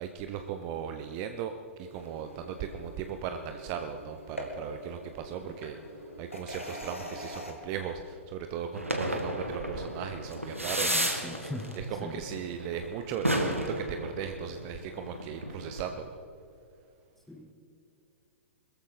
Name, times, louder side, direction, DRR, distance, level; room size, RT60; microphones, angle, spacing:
voice 1, 0.0-10.9 11.8-16.1, right 8 dB, 35° right, 7 dB, 0.8 m, -37 dB
sound 1, 1.9-7.5, equal, 90° left, 2.5 m, -43 dB
sound 2, 8.7-15.8, right 1 dB, 90° right, 1.8 m, -33 dB
voice 2, 10.8-11.7 12.0-12.2 17.3-17.5, left 1 dB, 5° left, 3 dB, 1.2 m, -41 dB
22.0 x 14.0 x 4.1 m, 2.6 s
figure-of-eight pair, 105°, 7 cm